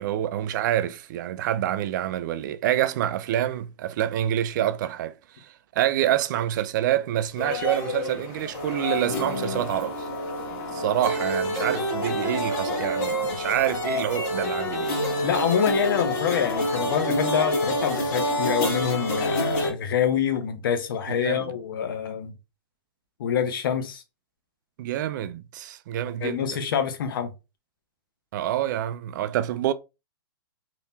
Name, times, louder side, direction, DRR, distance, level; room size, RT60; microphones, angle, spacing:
voice 1, 0.0-10.1 10.7-15.0 21.2-21.5 24.8-26.4 28.3-29.7, right 12 dB, 55° right, 0.4 m, -27 dB
sound 1, 7.4-19.7, left 1 dB, 45° left, 1.4 m, -27 dB
voice 2, 15.2-22.3 23.2-24.0 26.2-27.3, left 8 dB, 65° left, 0.8 m, -26 dB
3.4 x 2.9 x 2.7 m
hypercardioid pair, 130°, 12 cm